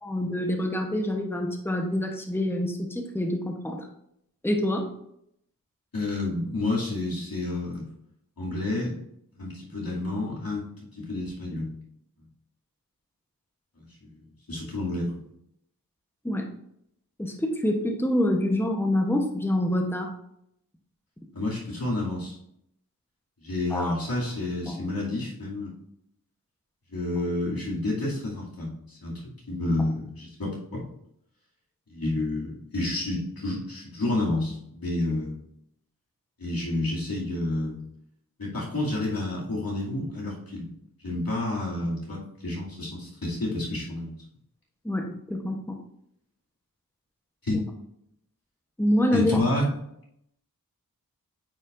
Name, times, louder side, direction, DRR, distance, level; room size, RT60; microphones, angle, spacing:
voice 1, 0.0-3.9 4.4-4.9 16.2-16.5 17.2-20.1 23.7-24.0 24.7-24.8 44.8-45.8 47.5-47.6 48.8-49.3, left 1 dB, 5° left, 2 dB, 0.9 m, -26 dB
voice 2, 5.9-7.8 8.4-9.0 9.4-10.7 10.9-11.7 14.0-14.1 14.5-15.1 21.3-22.4 23.4-25.7 26.9-29.2 29.5-30.9 31.9-35.4 36.4-37.8 38.4-40.7 41.0-44.2 47.4-47.6 49.1-49.7, left 2 dB, 80° left, -5 dB, 2.5 m, -29 dB
8.9 x 5.1 x 2.5 m, 0.75 s
wide cardioid pair, 55°, 35 cm